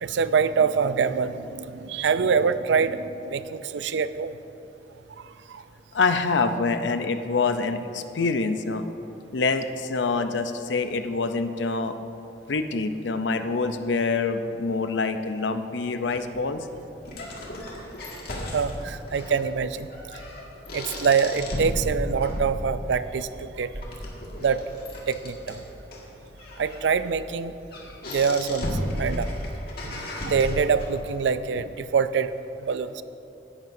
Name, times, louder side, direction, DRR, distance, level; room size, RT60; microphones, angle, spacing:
voice 1, 0.0-4.4 5.5-5.6 18.5-19.9 20.7-23.7 24.4-24.6 25.1-25.6 26.6-27.6 28.1-29.3 29.8-32.3 32.6-33.0, right 6 dB, 80° right, 13 dB, 0.4 m, -25 dB
voice 2, 5.9-8.8 9.3-12.0 12.5-16.7, left 4 dB, 90° left, 9 dB, 0.6 m, -26 dB
sound 1, 16.1-31.1, left 1 dB, 55° left, 1.9 m, -35 dB
16.5 x 11.0 x 2.7 m, 3.0 s
head